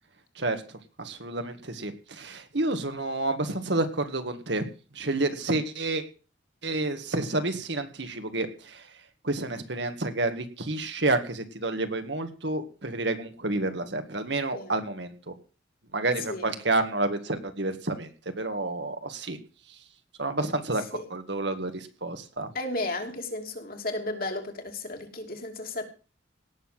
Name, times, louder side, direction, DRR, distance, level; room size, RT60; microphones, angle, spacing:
voice 1, 0.4-4.6 4.9-6.0 6.6-8.9 9.2-15.3 15.9-18.1 18.4-19.4 20.2-20.8 21.1-22.5, right 2 dB, 60° right, 1.9 m, -29 dB
voice 2, 16.2-16.6 20.4-21.1 22.5-25.8, left 2 dB, 50° left, 2.9 m, -34 dB
18.0 x 7.0 x 7.6 m
head